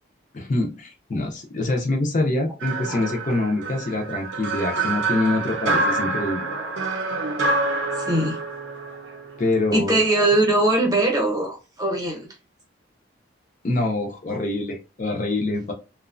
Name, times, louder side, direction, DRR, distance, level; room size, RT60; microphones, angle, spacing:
voice 1, 0.3-6.5 9.4-10.0 13.6-15.7, left 2 dB, 40° left, 2 dB, 0.4 m, -25 dB
sound 1, 2.6-9.7, right 3 dB, 75° right, 0.6 m, -27 dB
voice 2, 8.0-8.4 9.7-12.3 14.3-14.4, right 2 dB, 20° right, 0 dB, 0.7 m, -21 dB
2.9 x 2.1 x 2.4 m, 0.30 s
head